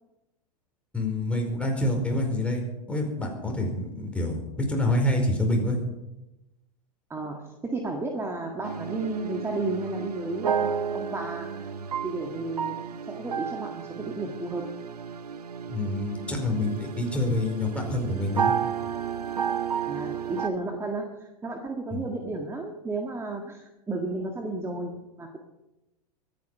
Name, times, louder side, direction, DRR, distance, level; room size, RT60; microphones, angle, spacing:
voice 1, 0.9-5.8 15.7-18.6 21.9-22.0, left 1 dB, 5° left, 1 dB, 4.9 m, -27 dB
voice 2, 7.1-11.7 12.0-12.8 13.1-14.6 19.9-25.4, right 2 dB, 15° right, 3 dB, 1.8 m, -33 dB
sound 1, 8.6-20.5, right 7 dB, 80° right, 1.1 m, -32 dB
24.0 x 9.3 x 5.7 m, 0.99 s
figure-of-eight pair, 95°, 20 cm